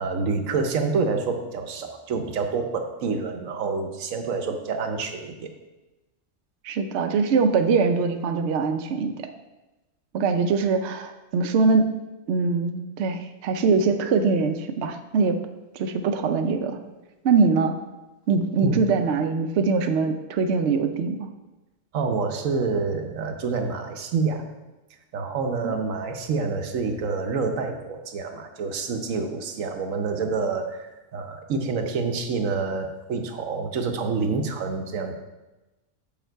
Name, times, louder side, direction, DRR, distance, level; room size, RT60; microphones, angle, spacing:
voice 1, 0.0-5.5 18.6-18.8 21.9-24.4 25.1-35.1, right 4 dB, 90° right, 5 dB, 1.2 m, -27 dB
voice 2, 6.6-9.1 10.1-11.9 12.3-15.4 15.7-16.8 17.2-17.8 18.3-21.3 25.6-25.7, right 4 dB, 65° right, 7 dB, 0.9 m, -22 dB
7.2 x 5.9 x 4.5 m, 1.1 s
omnidirectional pair, 1.3 m